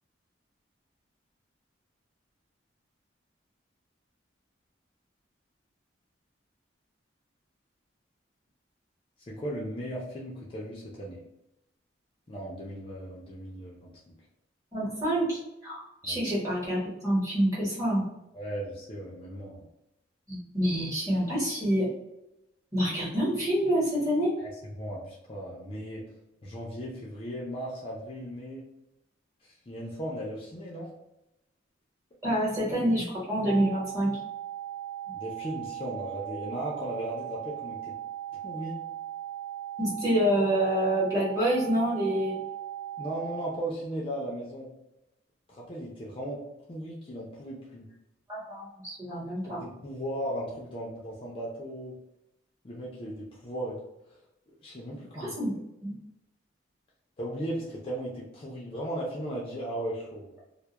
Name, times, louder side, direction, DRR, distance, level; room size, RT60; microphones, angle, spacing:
voice 1, 9.3-11.2 12.3-14.2 16.0-16.2 18.3-19.6 24.4-24.5 24.8-26.0 26.4-28.7 29.7-30.9 35.1-37.9 38.4-38.8 43.0-44.7 45.5-46.4 46.7-47.9 49.5-51.9 52.6-53.8 54.6-55.3 57.2-60.3, right 1 dB, 30° left, -4 dB, 0.4 m, -36 dB
voice 2, 14.7-18.1 20.3-21.9 22.7-24.3 32.2-34.2 39.8-42.4 48.3-49.6 55.1-55.5 55.8-55.9, equal, 15° right, -8 dB, 1.0 m, -27 dB
sound 1, 33.5-43.5, right 11 dB, 75° right, 0.4 m, -38 dB
2.2 x 2.0 x 2.8 m, 0.89 s
head